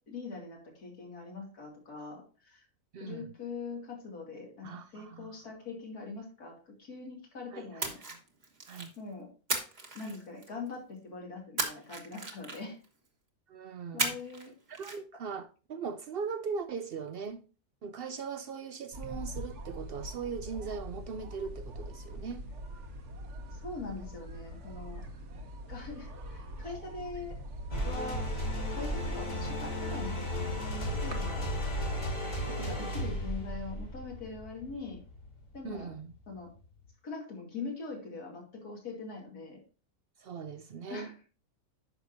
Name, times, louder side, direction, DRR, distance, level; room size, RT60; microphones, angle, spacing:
voice 1, 0.1-2.7 3.0-8.0 9.0-9.3 9.9-12.8 13.9-14.5 23.5-25.0 25.7-27.4 27.8-28.2 28.7-31.5 32.4-35.0 35.5-35.9 36.3-36.5 37.0-39.6 40.9-41.1, left 4 dB, 75° left, 2.9 m, -42 dB
voice 2, 2.9-3.3 4.6-5.3 7.5-7.9 8.7-8.9 13.5-14.2 14.7-17.5 17.8-22.4 25.3-25.4 35.6-36.1 40.2-41.1, right 5 dB, 75° right, 0.5 m, -40 dB
Splash splatter, 7.8-9.0 9.5-10.7 11.6-12.9 14.0-14.5 14.7-15.0, right 3 dB, 30° right, 1.3 m, -35 dB
sound 1, 18.9-31.2, right 1 dB, 55° right, 1.3 m, -42 dB
sound 2, 27.7-36.3, left 1 dB, 50° left, 2.9 m, -35 dB
9.8 x 6.2 x 2.7 m
omnidirectional pair, 1.6 m